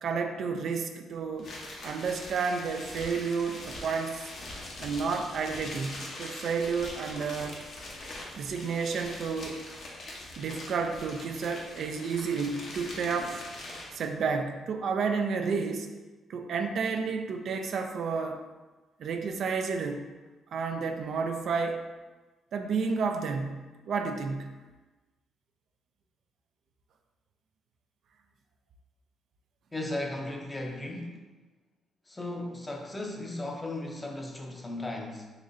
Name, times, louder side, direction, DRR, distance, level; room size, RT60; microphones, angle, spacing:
voice 1, 0.0-1.5 1.8-4.3 4.8-7.6 8.4-9.6 10.4-13.4 13.9-15.9 16.3-18.4 19.0-20.1 20.5-21.9 22.5-24.5, right 5 dB, 65° right, 5 dB, 0.3 m, -31 dB
sound 1, 1.4-14.1, left 2 dB, 60° left, 0.8 m, -42 dB
voice 2, 29.7-31.2 32.1-35.3, left 2 dB, 20° left, 1 dB, 0.6 m, -36 dB
3.8 x 3.0 x 2.6 m, 1.2 s
cardioid pair, 90°, 0 cm